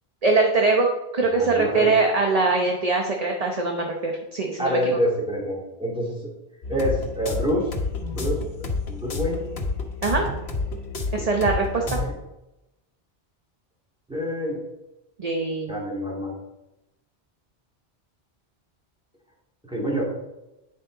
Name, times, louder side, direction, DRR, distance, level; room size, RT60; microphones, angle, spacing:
voice 1, 0.2-0.9 1.1-4.8 10.0-10.2 11.1-12.0 15.2-15.7, right 3 dB, 40° right, 1 dB, 0.9 m, -22 dB
voice 2, 1.4-2.0 4.6-6.1 6.7-7.7 8.1-8.4 8.9-9.5 11.9-12.1 14.1-14.6 15.7-16.3 19.7-20.0, equal, 5° right, -4 dB, 2.5 m, -26 dB
sound 1, 6.6-12.1, left 3 dB, 80° left, 1.5 m, -29 dB
9.4 x 6.5 x 4.1 m, 0.96 s
omnidirectional pair, 1.1 m